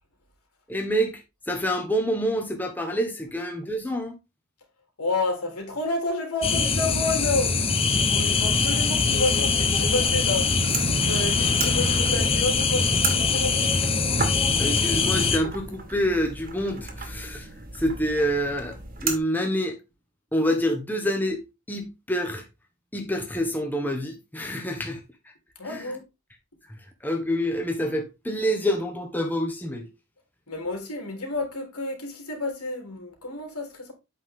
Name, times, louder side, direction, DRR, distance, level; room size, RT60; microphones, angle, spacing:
voice 1, 0.7-1.2 1.5-4.1 14.6-19.8 20.3-21.4 21.7-22.4 22.9-25.3 25.6-25.9 26.7-29.9, equal, 10° left, 1.3 m, -27 dB
voice 2, 5.0-10.6 10.9-13.7 25.6-26.0 30.5-33.9, left 2 dB, 90° left, 3.6 m, -30 dB
sound 1, 6.4-15.4, left 4 dB, 25° left, 1.0 m, -23 dB
sound 2, 9.8-19.2, right 4 dB, 40° right, 1.8 m, -35 dB
8.4 x 5.7 x 3.7 m
head